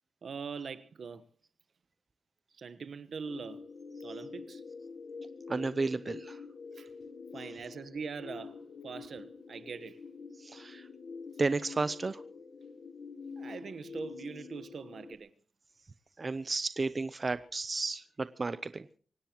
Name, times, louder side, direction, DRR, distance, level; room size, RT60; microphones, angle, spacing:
voice 1, 0.2-1.2 2.6-3.6 4.0-4.6 6.7-6.9 7.3-10.0 13.4-15.3, right 5 dB, 65° right, 1.2 m, -42 dB
sound 1, 3.3-15.1, left 4 dB, 60° left, 1.3 m, -46 dB
voice 2, 5.5-6.4 10.4-10.9 11.4-12.2 16.2-18.9, right 3 dB, 35° right, 0.7 m, -33 dB
24.5 x 18.0 x 3.0 m
wide cardioid pair, 130°, 0 cm